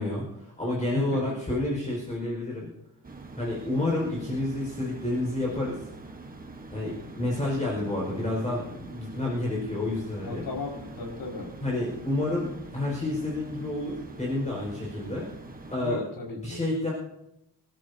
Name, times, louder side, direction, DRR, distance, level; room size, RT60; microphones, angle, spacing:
voice 1, 0.0-2.7 3.4-5.8 6.7-10.4 11.6-15.3 15.7-16.0 16.4-16.9, left 2 dB, 15° left, -4 dB, 5.1 m, -29 dB
voice 2, 0.9-1.3 10.2-11.5 15.7-16.6, left 3 dB, 60° left, -2 dB, 5.4 m, -35 dB
sound 1, 3.0-15.8, right 3 dB, 20° right, 1.2 m, -44 dB
26.0 x 13.5 x 2.8 m, 0.84 s
wide cardioid pair, 160°, 41 cm